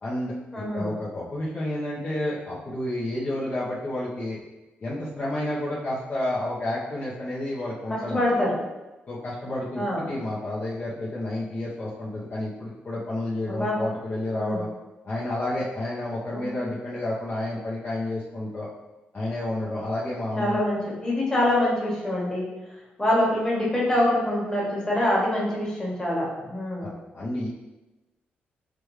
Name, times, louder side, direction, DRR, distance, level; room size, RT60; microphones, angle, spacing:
voice 1, 0.0-4.4 4.8-8.2 9.1-14.7 15.0-18.7 19.1-20.6 26.8-27.5, left 1 dB, 45° left, -7 dB, 0.8 m, -30 dB
voice 2, 0.5-0.9 7.9-8.6 9.7-10.1 13.5-13.8 14.3-14.6 16.3-16.4 20.4-22.4 23.0-26.9, left 1 dB, 15° left, -5 dB, 1.4 m, -25 dB
4.8 x 2.3 x 3.2 m, 1.1 s
cardioid pair, 85°, 4 cm